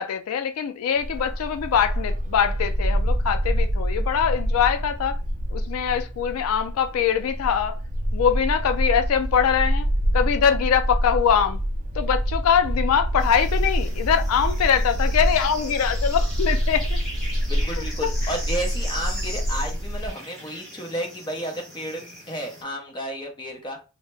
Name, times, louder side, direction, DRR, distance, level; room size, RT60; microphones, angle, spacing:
voice 1, 0.0-5.2 5.5-7.8 8.1-9.9 10.1-11.6 11.9-17.0 17.7-18.3, left 7 dB, 85° left, 0.3 m, -23 dB
Bark, 1.0-20.1, equal, 35° right, 0.4 m, -26 dB
sound 1, 13.2-22.6, equal, ahead, 1.2 m, -39 dB
voice 2, 17.5-23.8, right 1 dB, 20° left, 0.7 m, -32 dB
2.7 x 2.1 x 3.1 m
head